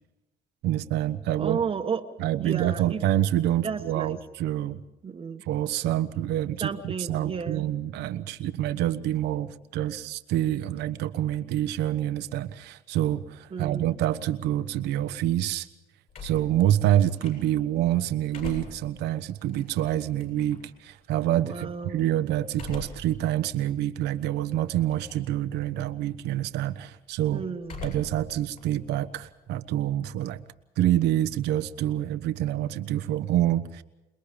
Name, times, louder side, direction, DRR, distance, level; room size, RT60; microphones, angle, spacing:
voice 1, 0.6-1.6 2.2-4.8 5.5-15.7 16.2-27.4 27.8-30.4 30.8-33.8, right 12 dB, 85° right, 12 dB, 1.1 m, -27 dB
voice 2, 1.4-2.1 2.4-3.0 3.6-4.2 5.0-5.4 6.6-7.7 13.5-13.9 21.5-22.0 27.3-27.8, right 6 dB, 35° right, 5 dB, 1.2 m, -32 dB
sound 1, 16.1-17.7 18.1-20.7 22.5-23.2 23.7-23.8 24.8-25.3 25.6-26.1 27.6-28.3 28.6-30.0, left 4 dB, 55° left, 7.9 m, -42 dB
28.0 x 21.0 x 5.2 m, 0.96 s
cardioid pair, 110°, 17 cm